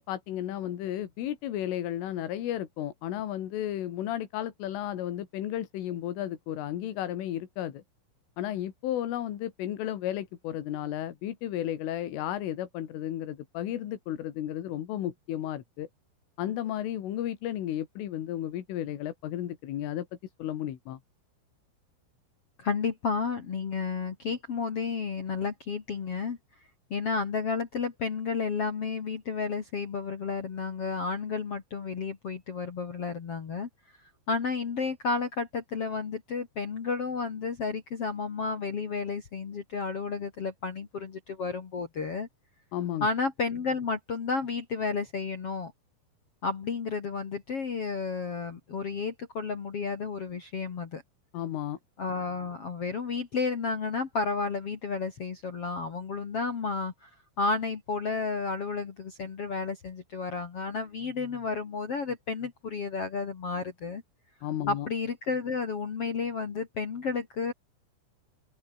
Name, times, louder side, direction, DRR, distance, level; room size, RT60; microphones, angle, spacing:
voice 1, 0.0-7.8 8.4-15.9 16.4-20.1 20.4-21.0 42.7-43.1 51.3-51.8 64.4-64.9, left 12 dB, 75° left, 4.7 m, -33 dB
voice 2, 22.6-26.4 26.9-33.7 34.3-42.3 43.0-45.7 46.4-51.0 52.0-57.1 57.4-64.0 64.7-67.5, left 4 dB, 55° left, 1.7 m, -32 dB
open air
omnidirectional pair, 5.9 m